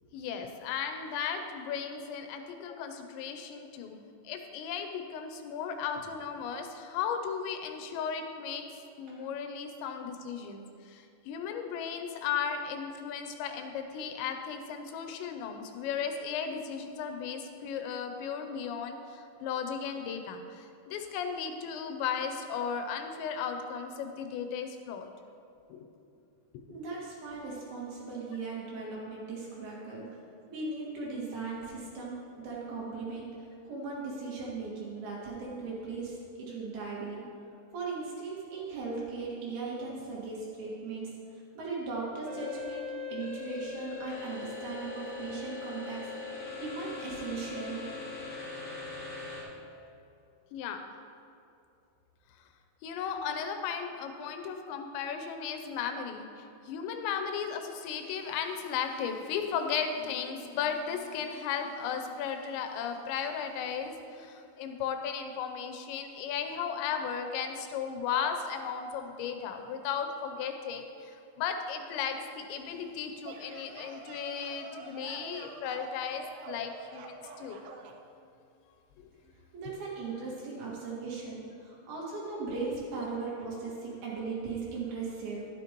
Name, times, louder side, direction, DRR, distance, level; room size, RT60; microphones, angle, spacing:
voice 1, 0.1-8.7 9.0-25.1 25.7-25.8 26.7-26.8 50.5-50.8 52.8-77.6 79.0-79.1, left 7 dB, 85° left, 5 dB, 3.0 m, -35 dB
voice 2, 26.7-30.2 30.5-33.3 33.6-37.2 37.7-42.8 43.1-46.1 46.6-47.9 79.5-85.5, right 4 dB, 65° right, -6 dB, 3.6 m, -38 dB
sound 1, 42.3-49.4, left 4 dB, 50° left, 1.5 m, -40 dB
sound 2, 73.0-78.0, right 5 dB, 80° right, 2.4 m, -47 dB
11.0 x 11.0 x 3.0 m, 2.6 s
omnidirectional pair, 5.0 m